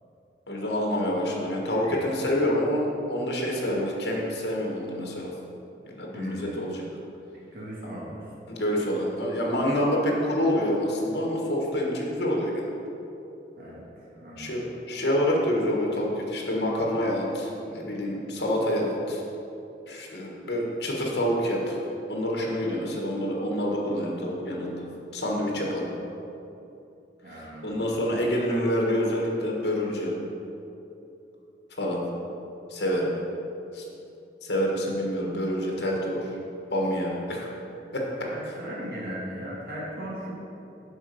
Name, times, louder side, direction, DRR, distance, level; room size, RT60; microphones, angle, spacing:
voice 1, 0.5-5.3 5.8-6.8 8.5-12.7 14.4-19.2 19.9-21.8 22.1-24.9 25.1-25.9 27.3-30.2 31.8-32.0 32.7-33.1 33.7-33.8 34.4-36.3 36.7-37.5 37.9-38.0, equal, 70° left, -2 dB, 1.5 m, -27 dB
voice 2, 1.6-2.3 3.5-3.8 6.1-6.6 7.3-8.3 13.6-14.6 25.3-25.7 27.2-28.2 38.3-40.3, equal, 55° right, -5 dB, 1.7 m, -39 dB
7.3 x 5.8 x 5.3 m, 2.9 s
head